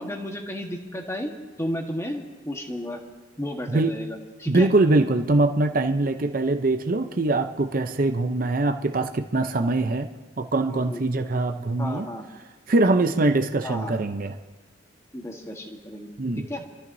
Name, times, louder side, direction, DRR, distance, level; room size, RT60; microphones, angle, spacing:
voice 1, 0.0-1.3 1.6-3.0 3.4-4.7 10.7-11.0 11.8-12.3 13.6-13.9 15.1-16.1 16.4-16.6, equal, 15° left, 2 dB, 1.4 m, -33 dB
voice 2, 4.5-10.1 10.4-12.1 12.7-14.4 16.2-16.4, right 2 dB, 45° right, 7 dB, 0.6 m, -23 dB
29.0 x 14.0 x 2.7 m, 1.2 s
head